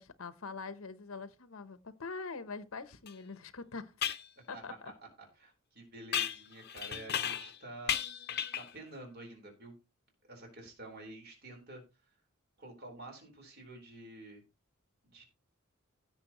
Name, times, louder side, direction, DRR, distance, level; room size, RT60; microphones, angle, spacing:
voice 1, 0.0-3.9 4.5-4.9, left 4 dB, 90° left, 0.9 m, -44 dB
sound 1, 3.1-3.2 4.0-4.3 6.1-7.6 7.9-8.8, left 9 dB, 50° left, 0.8 m, -34 dB
voice 2, 5.2-8.0 8.5-9.8 10.3-11.8 12.6-14.4 15.0-15.2, right 1 dB, 50° right, 4.2 m, -49 dB
16.5 x 6.9 x 3.0 m
head